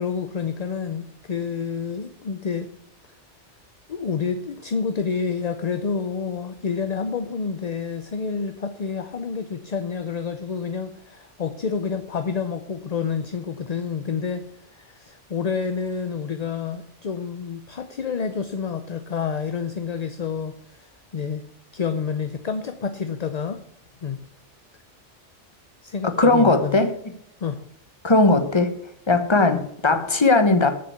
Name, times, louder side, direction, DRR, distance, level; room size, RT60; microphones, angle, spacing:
voice 1, 0.0-2.7 3.9-14.4 14.7-21.5 21.7-23.6 24.0-24.2 25.8-26.8 27.4-27.6, left 6 dB, 40° left, 9 dB, 0.7 m, -28 dB
voice 2, 26.0-26.9 28.0-28.7 29.1-30.7, left 2 dB, 25° left, 7 dB, 1.1 m, -18 dB
7.9 x 6.7 x 8.0 m, 0.72 s
omnidirectional pair, 1.2 m